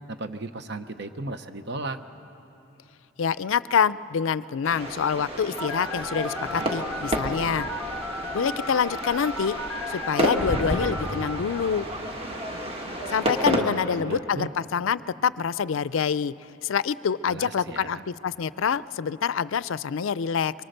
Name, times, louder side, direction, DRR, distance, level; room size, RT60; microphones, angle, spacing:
voice 1, 0.1-2.0 13.6-14.5 17.3-18.0, right 2 dB, 55° right, 9 dB, 0.9 m, -35 dB
voice 2, 3.2-7.7 8.3-9.6 9.9-11.9 13.1-16.3 16.6-20.5, left 7 dB, 75° left, 18 dB, 0.4 m, -26 dB
sound 1, 4.6-13.6, equal, 30° right, 1.6 m, -30 dB
Telephone, 5.6-11.4, left 1 dB, 10° left, 0.9 m, -35 dB
24.0 x 23.0 x 6.6 m, 2.9 s
head